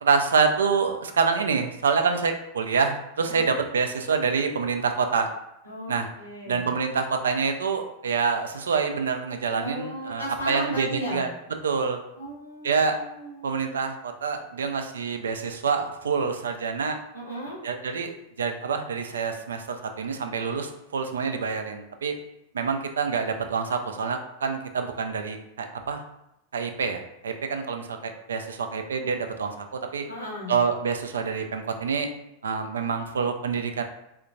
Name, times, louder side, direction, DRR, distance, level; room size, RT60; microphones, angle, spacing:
voice 1, 0.0-5.3 5.9-6.1 6.5-11.3 11.6-12.0 12.6-13.0 13.4-17.0 17.6-22.1 22.5-26.0 26.5-29.7 29.9-30.1 30.5-32.1 32.4-33.8, right 5 dB, 65° right, 6 dB, 0.3 m, -26 dB
voice 2, 5.6-6.7 9.5-11.3 12.2-13.8 17.1-17.6 30.1-30.6, equal, 85° left, -5 dB, 1.2 m, -36 dB
3.4 x 2.8 x 2.5 m, 0.83 s
figure-of-eight pair, 90°, 0 cm